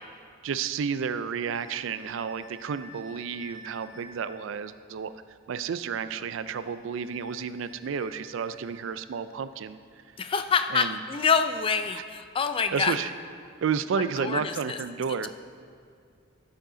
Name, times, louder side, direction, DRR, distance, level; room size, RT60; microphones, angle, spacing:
voice 1, 0.4-5.2 5.5-10.0 10.7-11.0 11.9-12.0 12.7-13.1 13.6-15.3, right 6 dB, 65° right, 13 dB, 0.4 m, -31 dB
sound 1, 1.5-4.3 6.4-9.0, equal, 25° right, 1.9 m, -51 dB
voice 2, 10.2-13.0 14.2-14.8, left 5 dB, 25° left, 9 dB, 0.3 m, -26 dB
12.5 x 7.4 x 3.8 m, 2.3 s
head